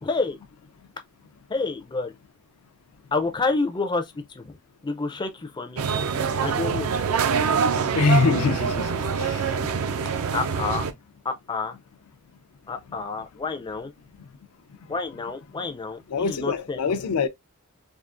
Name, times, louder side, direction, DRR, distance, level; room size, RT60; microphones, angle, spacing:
voice 1, 0.0-0.4 1.5-2.1 3.1-4.0 4.4-4.6 4.8-5.8 6.4-6.9 9.6-9.7 10.3-10.9 11.2-11.8 12.7-13.9 14.9-16.8, left 3 dB, 20° left, 0.4 m, -28 dB
sound 1, 5.8-10.9, right 6 dB, 65° right, 0.4 m, -25 dB
voice 2, 7.9-9.5 16.1-17.3, left 4 dB, 85° left, 0.4 m, -24 dB
3.6 x 2.4 x 2.4 m
head